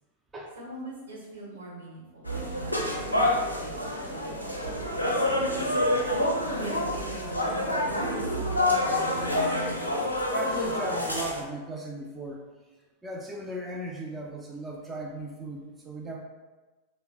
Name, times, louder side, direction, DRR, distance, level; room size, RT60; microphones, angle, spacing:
voice 1, 0.5-4.4 4.9-6.0 6.3-8.3, right 1 dB, 70° right, -4 dB, 0.9 m, -43 dB
sound 1, 2.2-11.4, left 1 dB, 90° left, 0.4 m, -27 dB
voice 2, 10.3-12.4 13.0-16.2, right 2 dB, 15° right, -2 dB, 0.3 m, -37 dB
3.2 x 2.0 x 2.8 m, 1.2 s
figure-of-eight pair, 90°, 0 cm